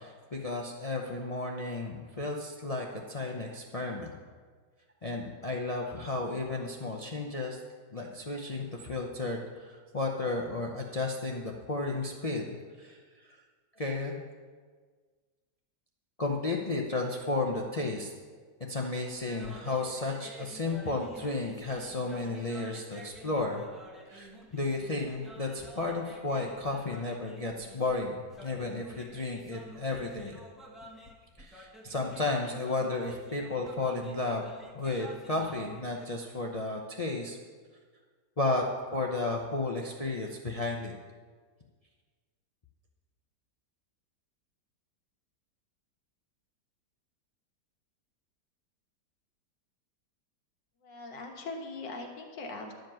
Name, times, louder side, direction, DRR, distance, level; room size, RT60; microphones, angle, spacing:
voice 1, 0.0-4.1 5.0-7.6 7.9-12.5 12.8-13.0 13.8-14.2 16.2-18.1 18.7-23.6 24.1-30.4 31.4-34.4 34.7-37.4 38.4-38.6 38.9-40.9, left 2 dB, 50° left, 0 dB, 0.4 m, -33 dB
Cantar en Punjabi, 19.3-36.0, equal, ahead, 0.9 m, -51 dB
voice 2, 50.8-52.7, left 3 dB, 80° left, 2 dB, 2.0 m, -41 dB
11.5 x 5.1 x 7.6 m, 1.5 s
omnidirectional pair, 1.9 m